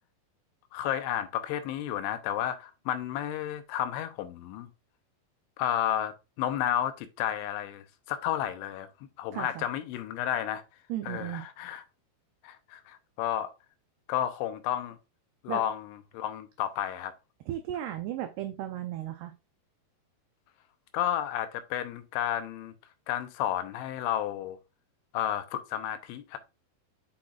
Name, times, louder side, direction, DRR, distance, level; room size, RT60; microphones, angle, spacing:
voice 1, 0.7-4.7 5.6-8.9 9.2-10.6 11.1-11.8 12.4-13.5 14.1-15.0 15.4-17.1 20.9-22.7 23.1-24.6 25.1-26.4, left 11 dB, 85° left, 3.1 m, -32 dB
voice 2, 9.3-9.7 10.9-11.4 15.5-15.6 17.5-19.3, right 12 dB, 90° right, 2.3 m, -35 dB
8.5 x 5.9 x 2.4 m
omnidirectional pair, 5.4 m